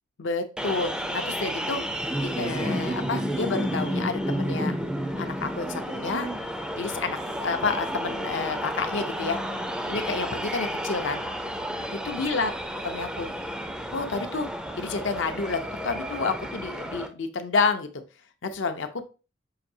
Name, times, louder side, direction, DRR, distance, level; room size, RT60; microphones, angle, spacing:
voice 1, 0.2-1.8 2.2-4.7 5.2-6.3 6.8-9.4 9.9-11.2 12.0-12.5 12.8-13.3 13.9-14.5 14.8-17.9 18.4-19.1, left 4 dB, 70° left, 8 dB, 0.5 m, -29 dB
sound 1, 0.6-17.1, equal, 5° right, 0.4 m, -31 dB
5.7 x 2.6 x 2.6 m, 0.32 s
head